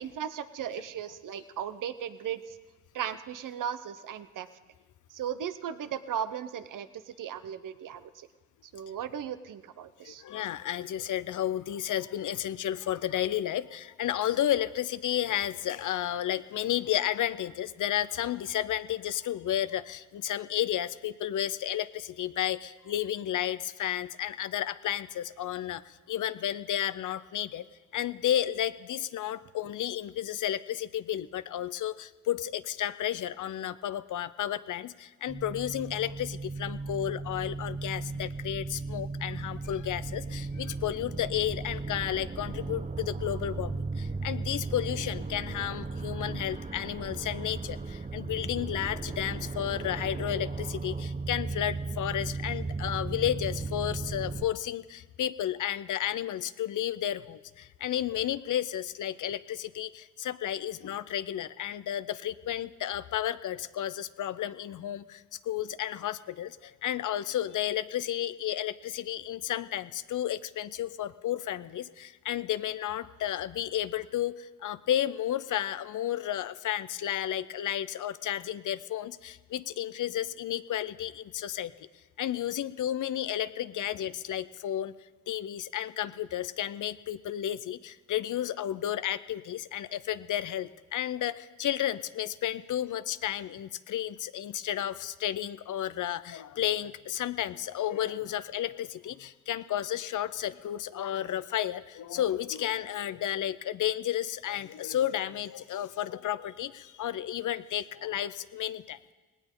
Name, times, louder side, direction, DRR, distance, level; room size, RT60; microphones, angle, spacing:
voice 1, 0.0-2.6 2.9-4.5 5.1-8.3 8.7-10.2, right 9 dB, 70° right, 13 dB, 0.8 m, -36 dB
voice 2, 10.0-27.7 27.9-81.7 82.2-84.9 85.3-109.1, left 11 dB, 65° left, 14 dB, 0.6 m, -32 dB
sound 1, 35.3-54.5, right 3 dB, 25° right, 0.8 m, -36 dB
18.0 x 17.5 x 3.8 m, 1.3 s
cardioid pair, 60°, 32 cm